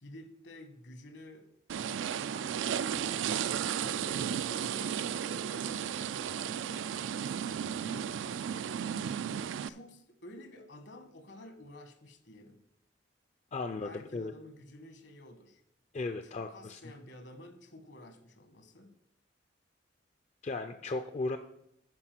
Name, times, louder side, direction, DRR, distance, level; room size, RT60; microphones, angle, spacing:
voice 1, 0.0-1.5 1.8-2.8 3.7-8.4 9.6-12.6 13.8-15.6 16.1-18.9, left 1 dB, 65° left, 8 dB, 1.3 m, -51 dB
sound 1, 1.7-9.7, right 8 dB, 85° right, 0.3 m, -34 dB
voice 2, 13.5-14.3 15.9-16.8 20.4-21.4, left 3 dB, 35° left, 8 dB, 0.4 m, -36 dB
9.8 x 4.8 x 6.0 m, 0.76 s
head